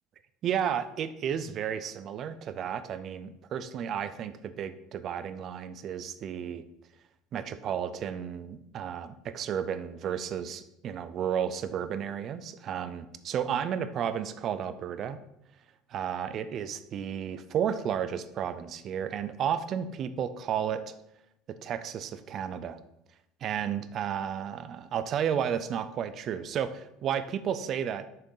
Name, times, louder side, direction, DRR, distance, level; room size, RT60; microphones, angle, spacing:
voice 1, 0.4-6.6 7.3-15.2 15.9-20.9 21.5-22.8 23.4-28.1, right 8 dB, 30° right, 13 dB, 0.5 m, -32 dB
6.6 x 6.1 x 5.5 m, 0.84 s
cardioid pair, 180°, 0 cm